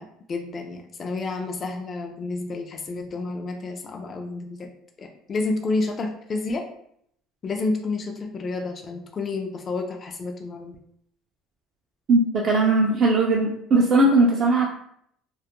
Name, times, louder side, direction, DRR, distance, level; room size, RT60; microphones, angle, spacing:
voice 1, 0.0-4.7 5.0-6.7 7.4-10.8, left 3 dB, 35° left, 3 dB, 0.3 m, -30 dB
voice 2, 12.1-14.7, right 2 dB, 40° right, -2 dB, 0.4 m, -19 dB
2.2 x 2.1 x 2.8 m, 0.71 s
cardioid pair, 115°, 0 cm